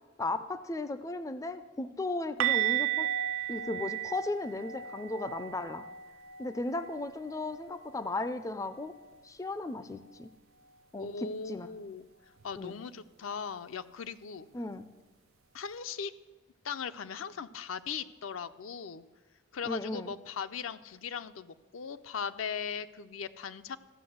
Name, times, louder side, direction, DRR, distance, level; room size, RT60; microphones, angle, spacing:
voice 1, 0.2-3.1 3.5-5.9 6.4-8.9 9.2-10.3 10.9-11.7 12.6-12.8 14.5-14.9 19.7-20.1, left 2 dB, 15° left, 12 dB, 0.3 m, -36 dB
sound 1, 2.4-8.2 8.4-8.7 9.0-9.2 12.4-12.5, right 12 dB, 80° right, 0.4 m, -34 dB
voice 2, 11.0-12.1 12.4-14.5 15.5-16.1 16.6-19.1 19.5-23.8, left 6 dB, 85° left, 11 dB, 0.5 m, -39 dB
13.5 x 5.8 x 7.8 m, 1.2 s
head